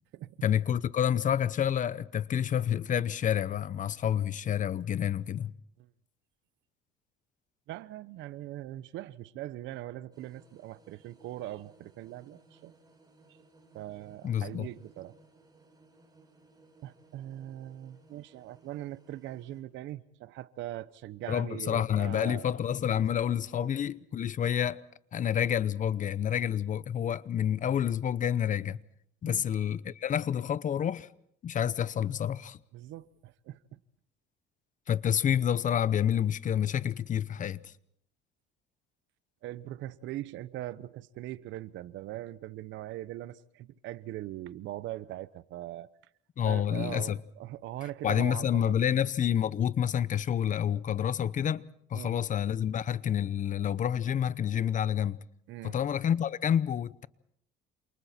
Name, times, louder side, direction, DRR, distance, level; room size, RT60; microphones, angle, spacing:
voice 1, 0.4-5.5 14.2-14.7 21.3-24.8 25.1-28.8 29.2-31.1 31.4-32.6 34.9-37.7 46.4-47.2 48.0-55.2 55.6-57.1, left 9 dB, 40° left, 0.8 m, -28 dB
voice 2, 7.7-12.7 13.7-15.2 16.8-22.5 22.8-23.0 23.5-23.7 29.2-29.4 32.7-33.8 39.4-45.9 46.4-48.8 51.9-52.1 55.5-55.8, right 14 dB, 70° right, 0.9 m, -41 dB
sound 1, 10.1-19.6, right 2 dB, 20° right, 6.5 m, -61 dB
28.0 x 28.0 x 4.4 m
cardioid pair, 110°, 20 cm